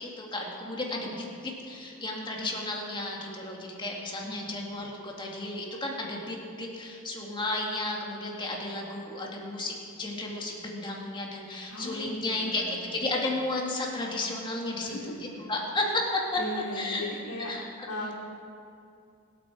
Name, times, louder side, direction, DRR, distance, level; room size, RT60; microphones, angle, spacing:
voice 1, 0.0-17.0 17.5-17.7 18.0-18.1, left 2 dB, 20° left, -1 dB, 2.0 m, -33 dB
voice 2, 4.2-4.6 11.7-13.0 14.8-15.5 16.4-17.5 17.9-18.1, left 1 dB, 90° left, -4 dB, 3.5 m, -38 dB
24.0 x 8.3 x 4.8 m, 2.5 s
head